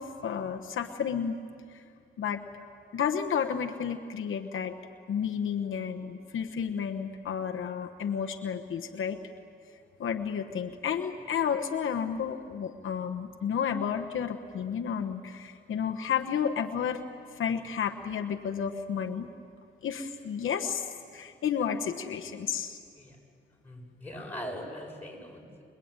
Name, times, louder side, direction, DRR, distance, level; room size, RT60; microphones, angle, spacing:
voice 1, 0.0-1.4 1.7-1.8 2.2-2.4 2.9-4.8 5.1-9.2 10.0-17.0 17.3-19.3 19.8-22.8, left 7 dB, 90° left, 4 dB, 1.2 m, -31 dB
voice 2, 23.6-25.6, equal, 10° left, -1 dB, 7.8 m, -41 dB
27.5 x 21.0 x 9.0 m, 2.3 s
cardioid pair, 70°, 20 cm